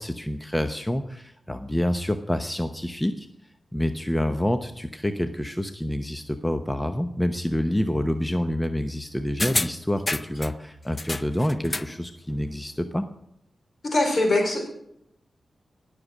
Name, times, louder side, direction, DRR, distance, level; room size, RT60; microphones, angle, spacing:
voice 1, 0.0-3.3 3.7-13.0, left 1 dB, 10° left, 8 dB, 0.9 m, -27 dB
sound 1, 9.4-10.5 11.0-12.0 12.3-12.4, left 2 dB, 30° left, 0.5 m, -29 dB
voice 2, 13.8-14.7, left 2 dB, 60° left, 3 dB, 4.9 m, -22 dB
18.5 x 6.8 x 6.2 m, 0.77 s
supercardioid pair, 40°, 0 cm